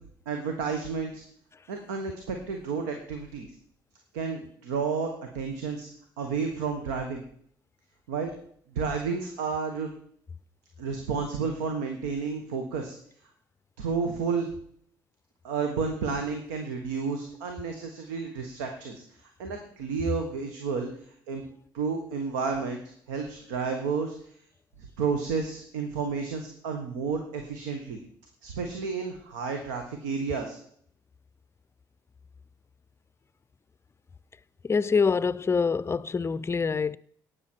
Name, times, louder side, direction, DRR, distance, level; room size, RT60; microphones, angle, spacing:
voice 1, 0.3-1.2 1.7-3.5 4.1-5.9 6.2-7.2 8.1-8.3 8.7-9.9 10.8-13.0 13.8-14.5 15.4-20.9 21.3-21.4 21.7-24.1 25.0-28.0 28.4-30.6, right 5 dB, 80° right, 1.2 m, -31 dB
voice 2, 34.6-37.0, left 5 dB, 25° left, 0.5 m, -25 dB
18.0 x 6.8 x 4.5 m
hypercardioid pair, 50°, 10 cm